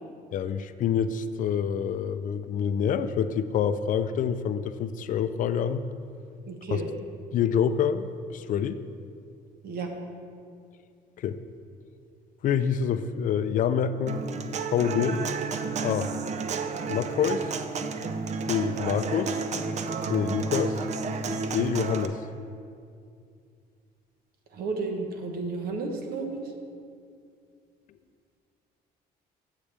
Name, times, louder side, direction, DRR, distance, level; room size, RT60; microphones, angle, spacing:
voice 1, 0.3-5.8 6.7-6.8 7.3-8.1 8.3-8.8 11.2-11.4 12.4-14.2 14.7-15.2 15.8-16.1 16.9-17.5 18.5-19.4 20.1-20.8 21.5-22.2, left 8 dB, 50° left, 12 dB, 0.4 m, -26 dB
voice 2, 6.5-6.9 9.6-9.9 24.5-26.4, right 3 dB, 65° right, 3 dB, 1.1 m, -32 dB
Human voice / Acoustic guitar, 14.1-22.1, right 4 dB, 45° right, 0.5 m, -31 dB
8.4 x 8.2 x 3.4 m, 2.3 s
cardioid pair, 110°, 17 cm